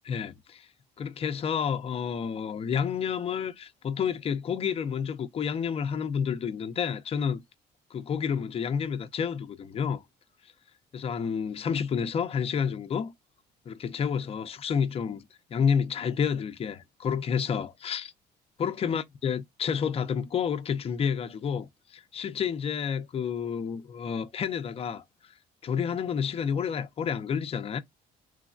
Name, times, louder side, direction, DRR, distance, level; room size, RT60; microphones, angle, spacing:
voice 1, 0.1-0.7 1.0-7.4 7.9-10.0 10.9-13.1 13.7-18.1 18.6-25.0 25.6-27.8, left 7 dB, 35° left, 0.5 m, -30 dB
3.2 x 2.1 x 2.4 m
cardioid pair, 110°, 17 cm